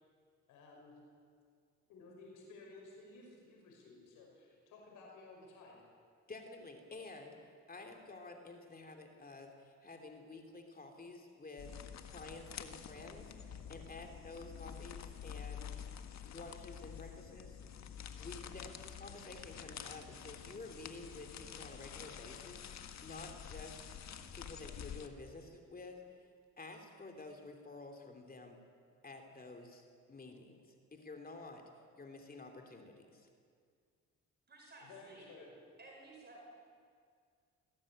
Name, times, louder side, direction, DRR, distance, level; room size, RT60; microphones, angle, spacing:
voice 1, 0.5-0.9 1.9-5.8 34.8-35.5, left 3 dB, 90° left, -1 dB, 5.9 m, -55 dB
voice 2, 6.3-15.9 16.2-17.6 18.2-26.0 26.6-28.6 29.0-31.6 32.0-33.3, left 3 dB, 30° left, 4 dB, 2.9 m, -51 dB
sound 1, 11.6-25.1, left 8 dB, 65° left, 1.6 m, -48 dB
voice 3, 34.5-35.3 35.8-36.4, right 2 dB, 35° right, -1 dB, 4.4 m, -55 dB
20.0 x 17.0 x 8.8 m, 2.1 s
cardioid pair, 90°, 30 cm